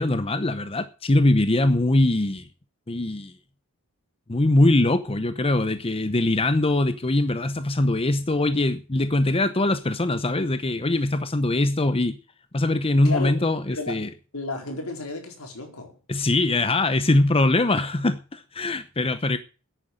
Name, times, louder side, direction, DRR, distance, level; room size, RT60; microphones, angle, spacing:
voice 1, 0.0-2.5 2.9-3.3 4.3-12.2 12.5-14.1 16.1-19.4, left 2 dB, 25° left, 0.8 m, -22 dB
voice 2, 1.6-1.9 13.0-13.4 13.7-14.0 14.3-16.0, left 3 dB, 75° left, 4.3 m, -33 dB
10.5 x 9.3 x 8.8 m
head